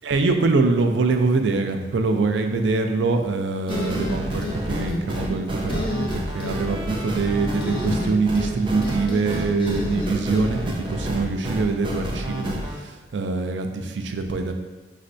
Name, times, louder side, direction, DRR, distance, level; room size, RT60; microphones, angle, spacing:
voice 1, 0.0-14.5, right 3 dB, 80° right, 6 dB, 0.4 m, -24 dB
sound 1, 3.7-4.6 4.9-5.3 5.7-6.5 7.6-8.5 8.8-10.5, left 1 dB, 30° left, 0.5 m, -30 dB
sound 2, 3.7-12.7, right 1 dB, 30° right, 0.5 m, -29 dB
5.1 x 3.2 x 2.6 m, 1.2 s
head